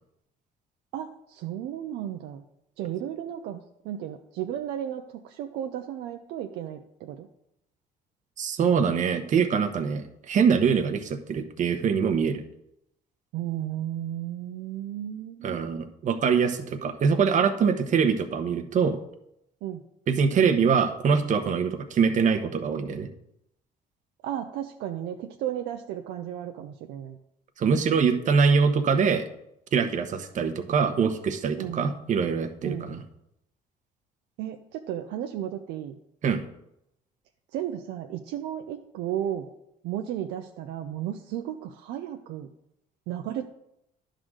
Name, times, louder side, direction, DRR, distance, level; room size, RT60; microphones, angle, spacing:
voice 1, 0.9-2.5 2.8-7.3 13.3-15.7 19.6-19.8 24.2-27.2 31.6-31.9 32.6-33.0 34.4-36.0 37.5-39.5 39.8-42.5 43.1-43.5, right 11 dB, 85° right, 4 dB, 0.6 m, -34 dB
voice 2, 8.4-12.4 15.4-19.0 20.1-23.1 27.6-29.3 29.7-33.0 36.2-36.4, right 6 dB, 45° right, 6 dB, 1.0 m, -24 dB
10.5 x 3.8 x 6.4 m, 0.80 s
cardioid pair, 110°, 17 cm